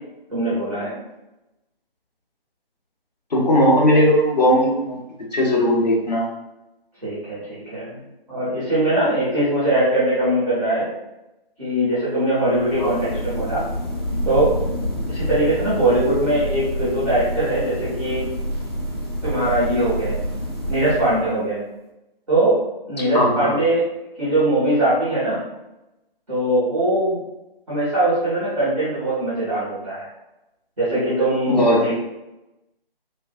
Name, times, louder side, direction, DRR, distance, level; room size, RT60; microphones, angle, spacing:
voice 1, 0.3-1.0 3.9-4.0 7.0-8.0 8.3-10.9 11.6-13.6 14.2-14.5 15.1-18.3 19.2-20.2 20.7-21.6 22.3-22.6 22.9-23.9 24.2-25.4 26.3-27.2 27.7-30.0 30.8-31.9, right 1 dB, 5° right, -11 dB, 0.7 m, -21 dB
voice 2, 3.3-5.0 5.3-6.2 12.8-12.9 23.1-23.5 31.5-31.9, equal, 45° left, -4 dB, 0.8 m, -18 dB
sound 1, 12.4-21.5, equal, 25° left, 0.4 m, -28 dB
3.2 x 2.2 x 2.5 m, 0.96 s
figure-of-eight pair, 155°, 30 cm